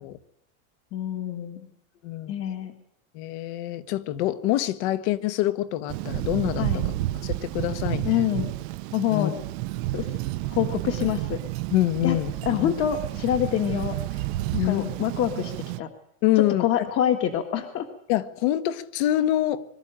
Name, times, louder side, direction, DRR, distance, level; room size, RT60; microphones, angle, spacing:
voice 1, 0.9-1.7 2.3-2.7 6.6-6.9 8.1-8.5 8.9-9.4 9.9-10.1 10.5-11.4 12.0-12.2 12.5-14.3 14.5-15.9 16.4-17.9, left 10 dB, 35° left, 5 dB, 1.7 m, -26 dB
voice 2, 2.0-2.3 3.1-6.7 7.2-8.2 9.1-9.3 11.7-12.7 14.5-14.9 16.2-16.6 18.1-19.6, left 14 dB, 55° left, 12 dB, 1.6 m, -25 dB
Thunder, 5.9-15.8, right 16 dB, 55° right, 0.9 m, -31 dB
23.5 x 13.5 x 9.0 m, 0.78 s
supercardioid pair, 155°, 40 cm